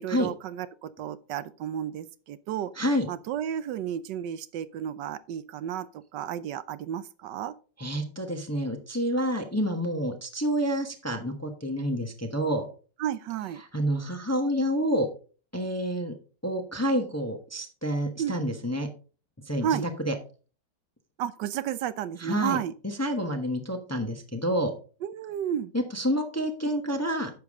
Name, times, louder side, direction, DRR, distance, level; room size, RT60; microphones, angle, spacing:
voice 1, 0.0-2.7 3.1-7.5 13.0-13.6 18.2-18.3 19.6-19.9 21.2-22.7 25.0-25.7, right 10 dB, 75° right, 1.3 m, -32 dB
voice 2, 2.8-3.1 7.8-12.7 13.7-15.1 15.5-16.1 16.4-18.9 19.4-20.1 22.2-22.6 23.0-24.7 25.7-27.3, equal, 10° left, 0.8 m, -28 dB
10.5 x 7.0 x 3.6 m
omnidirectional pair, 1.9 m